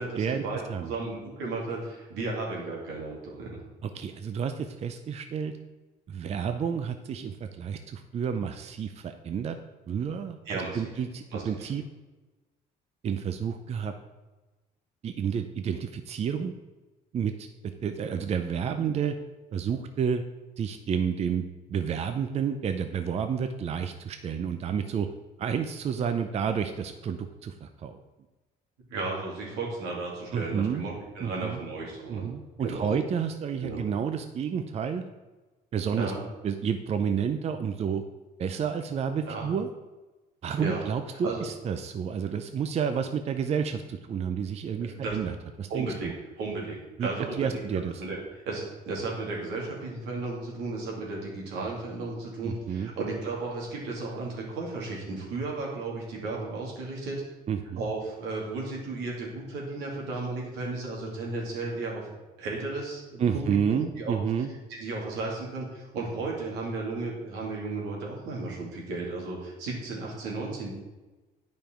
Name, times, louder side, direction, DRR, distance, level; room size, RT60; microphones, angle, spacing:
voice 1, 0.0-3.6 10.5-10.9 11.3-11.7 28.9-32.3 32.6-33.0 33.6-33.8 35.9-36.2 39.2-39.4 40.6-40.9 41.2-41.4 44.8-45.2 45.7-46.1 46.4-48.2 48.5-57.2 57.8-62.1 62.4-64.2 64.7-70.7, right 3 dB, 90° right, -3 dB, 2.5 m, -34 dB
voice 2, 3.8-5.5 6.1-9.6 9.9-11.8 13.0-13.9 15.0-16.5 17.1-17.5 17.8-19.2 19.5-20.2 20.6-25.1 25.4-28.0 30.3-30.9 31.2-31.6 32.1-35.0 35.7-36.1 36.4-38.0 38.4-39.7 40.4-46.1 47.0-47.1 47.4-48.0 52.4-52.9 57.5-57.8 63.2-64.5, right 7 dB, 40° right, 8 dB, 0.5 m, -30 dB
9.2 x 5.3 x 4.4 m, 1.2 s
cardioid pair, 110°, 17 cm